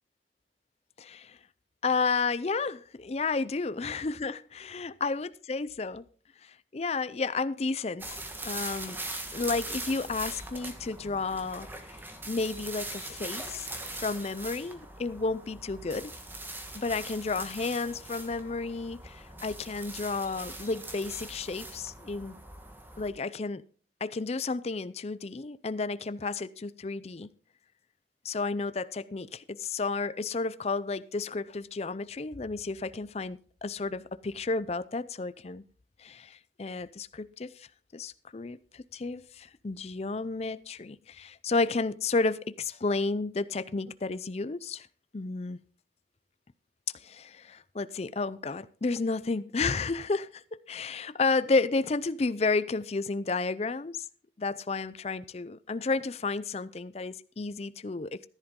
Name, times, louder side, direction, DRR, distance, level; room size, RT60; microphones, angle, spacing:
voice 1, 1.0-1.4 1.8-6.0 6.4-9.0 9.3-12.0 12.3-16.1 16.7-22.4 23.0-23.6 24.0-27.3 28.2-35.6 36.0-44.9 45.1-45.6 46.9-54.1 54.4-58.3, left 3 dB, 35° left, 0.4 m, -32 dB
sound 1, 8.0-23.1, right 2 dB, 10° right, 1.4 m, -41 dB
14.5 x 10.5 x 3.7 m
head